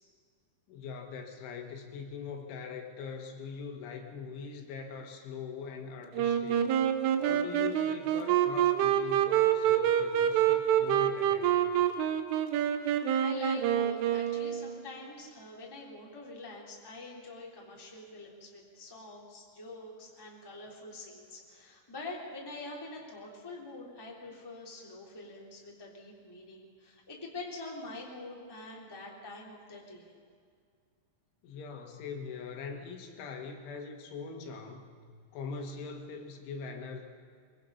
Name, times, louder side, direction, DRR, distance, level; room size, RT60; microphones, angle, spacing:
voice 1, 0.7-6.7 7.2-11.7 31.4-34.9 35.3-37.0, left 5 dB, 75° left, 4 dB, 4.0 m, -42 dB
Wind instrument woodwind instrument, 6.1-14.9, right 10 dB, 85° right, 3.6 m, -27 dB
voice 2, 12.7-30.1, left 2 dB, 5° left, -3 dB, 2.5 m, -45 dB
24.5 x 23.0 x 5.7 m, 2.2 s
omnidirectional pair, 5.5 m